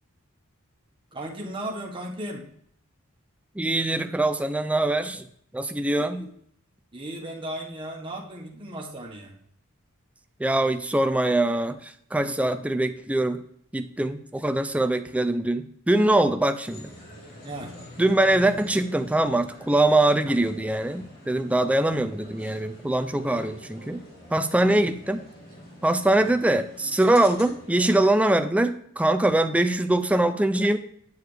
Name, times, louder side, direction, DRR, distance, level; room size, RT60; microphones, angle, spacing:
voice 1, 1.1-2.5 6.0-6.3 6.9-9.3 17.4-17.7 24.6-24.8, right 1 dB, 25° right, -1 dB, 1.4 m, -36 dB
voice 2, 3.6-5.3 5.5-6.3 10.4-13.4 13.7-16.9 18.0-24.0 24.3-25.2 25.8-30.8, right 1 dB, 5° right, 9 dB, 0.4 m, -23 dB
sound 1, 16.6-27.9, equal, 45° left, 2.3 m, -45 dB
9.4 x 6.7 x 3.3 m, 0.68 s
head